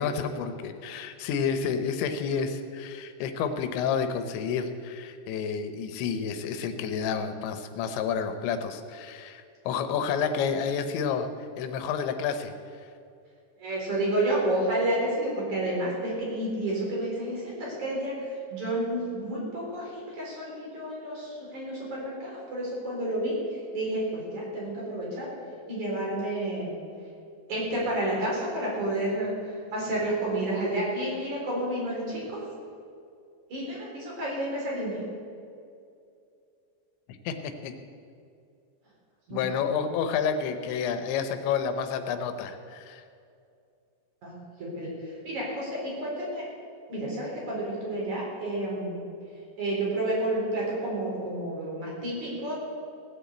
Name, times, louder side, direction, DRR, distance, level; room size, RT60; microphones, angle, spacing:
voice 1, 0.0-12.5 12.8-12.9 37.1-37.7 39.3-43.0, left 6 dB, 85° left, 9 dB, 3.2 m, -30 dB
voice 2, 13.6-25.3 25.7-26.7 27.5-32.5 33.5-35.1 39.3-39.4 39.7-39.8 44.2-46.4 46.9-49.0 49.6-52.5, right 1 dB, 45° right, -4 dB, 5.1 m, -30 dB
17.5 x 7.2 x 8.1 m, 2.4 s
omnidirectional pair, 5.1 m